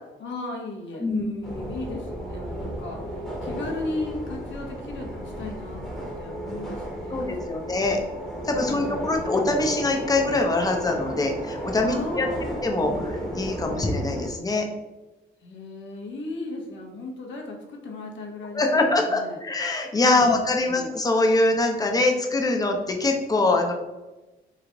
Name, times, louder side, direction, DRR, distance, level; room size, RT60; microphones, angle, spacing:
voice 1, 0.2-7.8 8.6-9.3 11.8-12.6 15.4-19.4 20.2-20.9, left 2 dB, 70° left, 1 dB, 0.9 m, -36 dB
sound 1, 1.4-14.3, equal, ahead, 1.0 m, -34 dB
voice 2, 7.1-8.0 8.4-12.3 12.6-14.7 18.5-23.7, left 2 dB, 20° left, 2 dB, 0.6 m, -23 dB
3.1 x 2.4 x 3.8 m, 1.1 s
cardioid pair, 90°, 20 cm